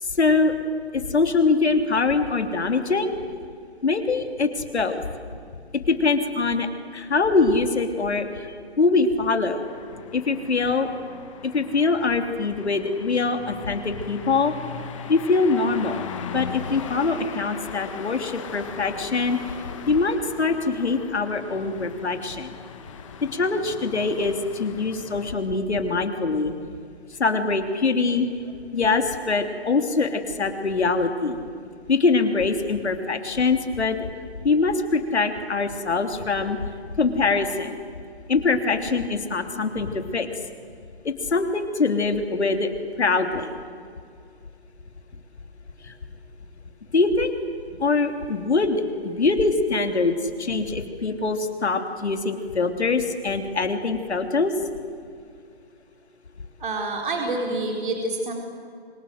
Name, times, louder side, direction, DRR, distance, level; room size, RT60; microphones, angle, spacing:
voice 1, 0.1-0.5 0.9-3.1 3.8-5.0 5.9-9.6 10.1-10.9 11.4-14.5 15.1-16.0 16.3-19.5 19.9-22.6 23.2-26.5 27.1-28.3 28.7-31.4 31.9-34.1 34.4-36.6 37.0-37.8 38.3-40.3 41.0-42.7 43.0-43.5 45.8-45.9 46.9-47.3 47.8-54.5, left 4 dB, 85° left, 6 dB, 3.2 m, -23 dB
sound 1, 9.6-25.3, left 6 dB, 30° left, 1.8 m, -39 dB
voice 2, 56.6-58.3, right 2 dB, 50° right, 1 dB, 4.4 m, -27 dB
29.0 x 25.5 x 8.0 m, 2.2 s
hypercardioid pair, 165°, 32 cm